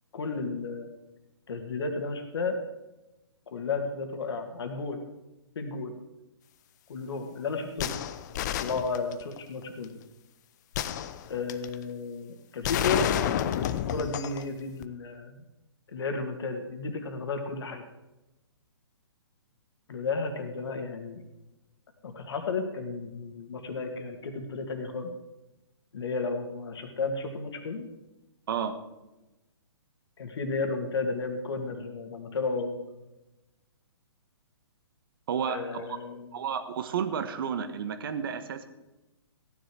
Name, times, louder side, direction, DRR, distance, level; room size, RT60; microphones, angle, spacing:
voice 1, 0.1-0.9 1.5-2.6 3.5-5.0 5.6-5.9 6.9-8.0 8.6-9.9 11.3-13.1 13.9-15.4 15.9-17.8 19.9-21.2 22.0-25.1 25.9-27.9 30.2-33.0 35.5-36.4, left 4 dB, 65° left, 5 dB, 2.5 m, -33 dB
sound 1, 7.8-9.4 10.7-11.7 12.6-14.4 14.8-14.9, left 10 dB, 40° left, 0.8 m, -30 dB
voice 2, 35.3-35.9 36.3-38.7, right 7 dB, 55° right, 10 dB, 1.4 m, -31 dB
15.0 x 10.0 x 4.8 m, 1.0 s
hypercardioid pair, 135°, 14 cm